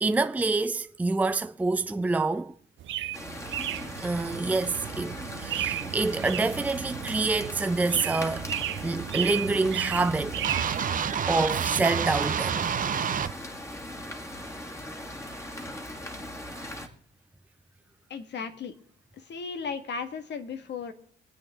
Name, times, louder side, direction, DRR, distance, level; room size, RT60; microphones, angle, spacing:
voice 1, 0.0-2.5 4.0-8.5 8.8-10.4 11.3-12.7, right 3 dB, 10° right, 0.5 m, -27 dB
sound 1, 2.8-10.9, right 12 dB, 75° right, 0.8 m, -34 dB
sound 2, 3.1-16.9, left 1 dB, 15° left, 2.1 m, -39 dB
sound 3, 10.4-13.3, right 8 dB, 45° right, 0.7 m, -28 dB
voice 2, 18.1-18.7 19.3-20.9, left 5 dB, 60° left, 1.6 m, -35 dB
24.5 x 8.4 x 3.6 m
cardioid pair, 90°, 20 cm